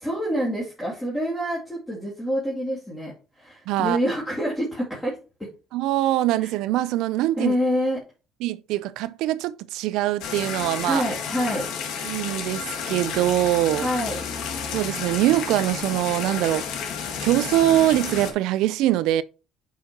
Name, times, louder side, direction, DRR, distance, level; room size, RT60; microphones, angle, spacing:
voice 1, 0.0-5.2 6.4-6.5 7.4-8.0 10.8-11.7 13.8-14.2, equal, 10° left, 2.5 m, -27 dB
voice 2, 3.7-4.0 5.7-7.6 8.4-11.0 12.0-13.9 14.7-16.7 17.2-19.2, right 14 dB, 80° right, 0.4 m, -23 dB
sound 1, 10.2-18.3, left 6 dB, 75° left, 1.5 m, -31 dB
8.9 x 5.6 x 2.9 m
cardioid pair, 120°, 0 cm